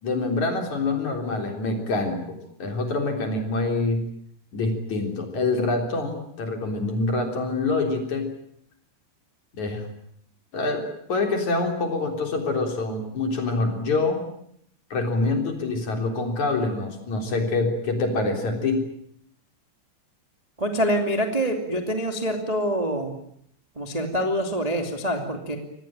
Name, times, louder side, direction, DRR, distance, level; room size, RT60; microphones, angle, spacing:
voice 1, 0.0-4.1 4.5-8.3 9.5-9.8 10.5-14.2 14.9-18.9, left 3 dB, 45° left, 4 dB, 4.7 m, -26 dB
voice 2, 20.6-23.1 23.7-25.6, equal, 15° right, 4 dB, 1.5 m, -25 dB
26.0 x 19.0 x 8.9 m, 0.70 s
omnidirectional pair, 5.1 m